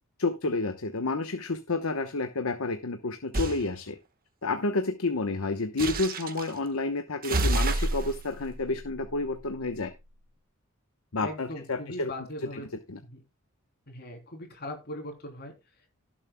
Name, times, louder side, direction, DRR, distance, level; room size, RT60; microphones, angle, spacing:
voice 1, 0.2-4.0 4.4-9.9 11.1-12.1 12.5-12.6 12.9-13.0, left 3 dB, 80° left, 7 dB, 1.0 m, -30 dB
sound 1, 3.3-3.6 5.8-6.5 7.2-9.9, right 2 dB, 45° right, 1.3 m, -30 dB
voice 2, 11.2-12.7 13.0-13.2 13.9-15.9, left 1 dB, 50° left, 3 dB, 3.2 m, -40 dB
17.5 x 7.4 x 2.2 m, 0.26 s
head